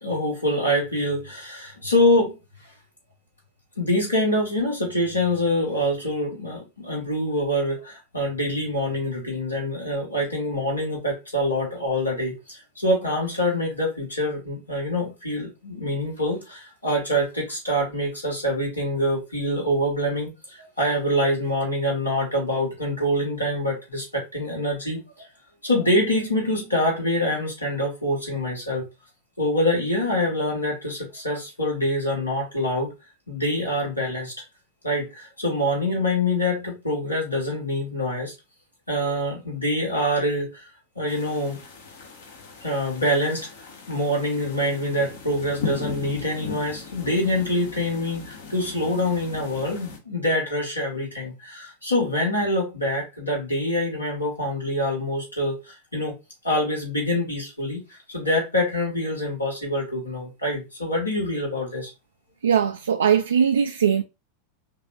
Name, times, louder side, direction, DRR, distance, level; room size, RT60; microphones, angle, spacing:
voice 1, 0.0-2.4 3.8-25.3 25.6-28.8 29.4-32.9 33.3-34.3 34.8-38.3 38.9-40.6 40.9-41.6 42.6-43.5 43.9-56.1 56.4-57.8 58.1-61.9, left 1 dB, 80° left, 1.8 m, -25 dB
sound 1, 41.1-50.0, left 5 dB, 60° left, 0.9 m, -38 dB
voice 2, 62.4-64.0, right 8 dB, 70° right, 0.3 m, -20 dB
5.2 x 2.5 x 2.4 m
figure-of-eight pair, 90°, 0 cm